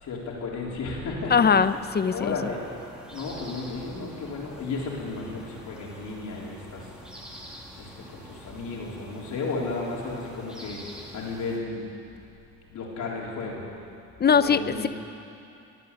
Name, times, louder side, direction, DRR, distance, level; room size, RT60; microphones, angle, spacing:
voice 1, 0.0-1.5 2.1-2.8 3.1-6.9 7.8-11.9 12.7-13.6 14.2-14.9, left 3 dB, 75° left, -3 dB, 3.7 m, -33 dB
voice 2, 1.3-2.4 14.2-14.9, left 6 dB, 35° left, 13 dB, 0.6 m, -21 dB
sound 1, 1.4-11.6, equal, 5° right, 2.6 m, -46 dB
21.0 x 8.4 x 8.0 m, 2.7 s
cardioid pair, 90°, 30 cm